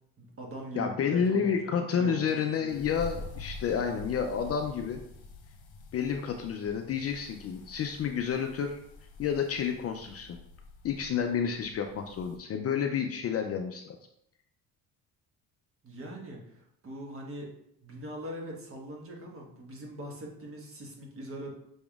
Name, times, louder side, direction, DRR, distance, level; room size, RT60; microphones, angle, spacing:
voice 1, 0.2-2.9 15.8-17.5 17.8-21.5, equal, 35° right, -1 dB, 1.3 m, -42 dB
voice 2, 0.8-5.0 5.9-8.8 9.2-10.4 10.8-14.0, left 7 dB, 40° left, 4 dB, 0.4 m, -30 dB
sound 1, 2.7-12.4, left 3 dB, 65° left, 1.0 m, -47 dB
6.0 x 3.5 x 2.4 m, 0.75 s
supercardioid pair, 95°, 41 cm